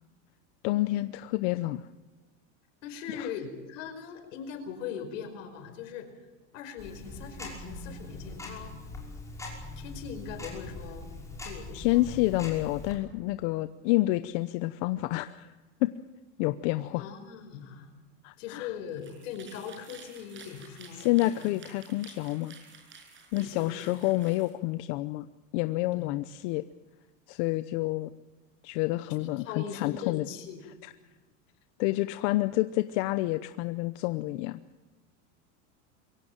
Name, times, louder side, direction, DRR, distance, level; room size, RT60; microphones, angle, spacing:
voice 1, 0.6-1.8 3.2-3.3 11.7-15.5 15.8-15.9 16.4-17.0 18.2-18.7 21.0-22.5 23.3-25.3 25.5-26.7 27.3-28.1 28.6-30.3 31.8-34.6, left 18 dB, 60° left, 12 dB, 0.9 m, -28 dB
voice 2, 2.8-6.1 6.5-8.7 9.8-11.1 11.4-12.1 16.9-17.9 18.4-21.5 23.4-23.9 25.9-26.2 29.2-30.6, left 7 dB, 85° left, 7 dB, 5.1 m, -40 dB
Tick-tock, 6.8-12.9, left 2 dB, 10° left, 5.5 m, -42 dB
sound 1, 18.9-24.5, right 4 dB, 30° right, 6.5 m, -52 dB
23.5 x 16.5 x 9.1 m, 1.2 s
supercardioid pair, 150°, 37 cm